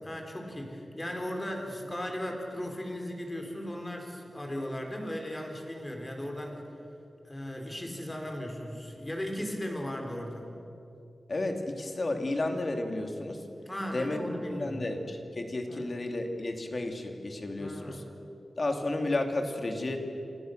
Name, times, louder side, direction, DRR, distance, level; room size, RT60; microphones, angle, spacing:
voice 1, 0.0-6.7 7.2-10.5 13.7-14.8 15.7-15.8 17.6-18.0, equal, 15° left, 2 dB, 4.3 m, -37 dB
voice 2, 11.3-13.4 13.9-14.2 14.5-18.0 18.6-20.0, left 2 dB, 40° left, 4 dB, 2.8 m, -32 dB
29.0 x 27.0 x 6.7 m, 2.8 s
wide cardioid pair, 135°, 0 cm